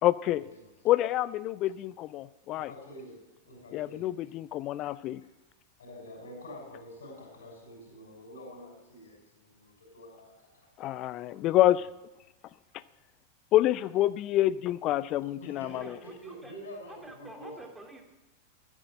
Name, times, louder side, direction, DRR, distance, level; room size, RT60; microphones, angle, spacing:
voice 1, 0.0-0.5 0.8-2.7 3.7-5.2 10.8-11.9 13.5-16.0, left 14 dB, 35° left, 19 dB, 0.4 m, -27 dB
voice 2, 2.6-4.1 5.8-10.7 15.4-17.6, equal, 65° left, -2 dB, 6.0 m, -47 dB
voice 3, 15.7-16.5 16.8-18.0, right 1 dB, 5° right, 2 dB, 2.6 m, -48 dB
14.0 x 9.9 x 7.6 m, 1.0 s
figure-of-eight pair, 90°, 0 cm